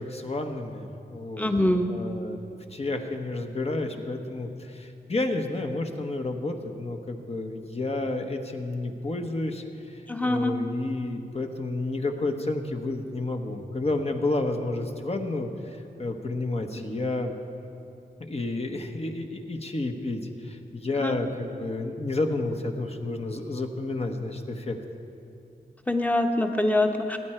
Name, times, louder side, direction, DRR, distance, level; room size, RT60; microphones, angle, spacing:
voice 1, 0.0-1.5 1.9-2.4 2.7-17.3 18.2-24.8, left 2 dB, 35° left, 4 dB, 1.1 m, -30 dB
voice 2, 1.4-1.9 10.1-10.6 21.0-21.2 25.9-27.2, left 1 dB, 10° left, 4 dB, 1.1 m, -24 dB
18.0 x 9.8 x 4.5 m, 2.9 s
wide cardioid pair, 85°, 17 cm